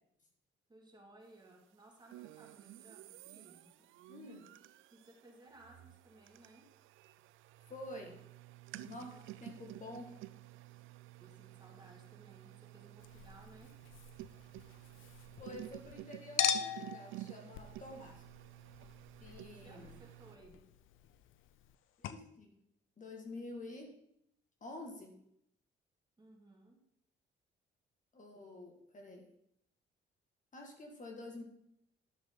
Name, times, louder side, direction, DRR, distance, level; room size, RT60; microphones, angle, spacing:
voice 1, 0.7-3.7 4.9-6.8 9.0-9.4 11.2-13.8 19.6-20.7 26.2-26.9, right 2 dB, 20° right, 0 dB, 2.4 m, -60 dB
sound 1, 2.1-20.4, right 16 dB, 85° right, 0.4 m, -52 dB
voice 2, 4.1-4.4 7.7-8.2 8.7-10.1 15.4-18.2 19.2-20.0 22.0-22.5 23.0-23.9 24.6-25.1 28.1-29.2 30.5-31.4, left 2 dB, 40° left, 1 dB, 2.1 m, -48 dB
Chink clink, 13.0-15.9 16.4-21.8 22.0-22.1, left 9 dB, 80° left, 0.6 m, -41 dB
11.0 x 7.0 x 4.0 m, 0.75 s
cardioid pair, 90°, 20 cm